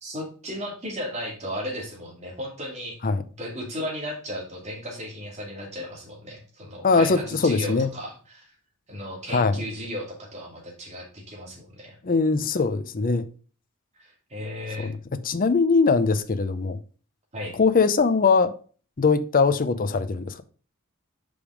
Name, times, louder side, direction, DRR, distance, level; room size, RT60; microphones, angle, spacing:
voice 1, 0.0-3.0 3.4-8.5 8.9-12.0 13.9-15.0 17.3-17.5, equal, 35° right, 2.5 m, -35 dB
voice 2, 6.8-7.9 9.3-9.6 12.0-13.3 14.8-14.9 15.2-16.8 17.5-18.5 19.0-20.4, left 4 dB, 40° left, 0.6 m, -21 dB
5.2 x 5.1 x 5.0 m
head